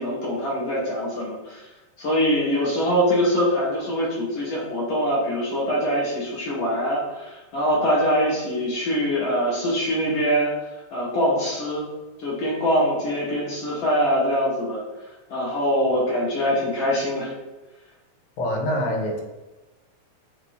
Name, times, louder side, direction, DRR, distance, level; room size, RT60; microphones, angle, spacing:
voice 1, 0.0-1.6 2.0-10.5 10.9-11.8 12.2-14.8 15.3-17.3, equal, 55° left, -6 dB, 1.5 m, -23 dB
voice 2, 18.4-19.2, left 1 dB, 85° left, 2 dB, 2.0 m, -25 dB
4.7 x 2.5 x 3.4 m, 1.1 s
omnidirectional pair, 3.4 m